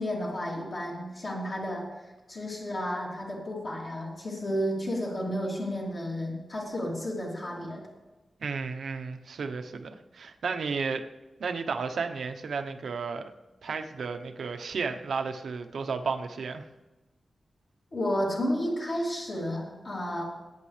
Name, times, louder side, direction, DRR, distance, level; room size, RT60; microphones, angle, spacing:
voice 1, 0.0-1.9 2.3-7.8 17.9-20.2, equal, 50° left, -5 dB, 2.8 m, -32 dB
voice 2, 8.4-11.0 11.4-13.3 13.6-16.6, right 5 dB, 85° right, 6 dB, 0.8 m, -33 dB
20.0 x 9.5 x 3.3 m, 1.1 s
wide cardioid pair, 160°, 0 cm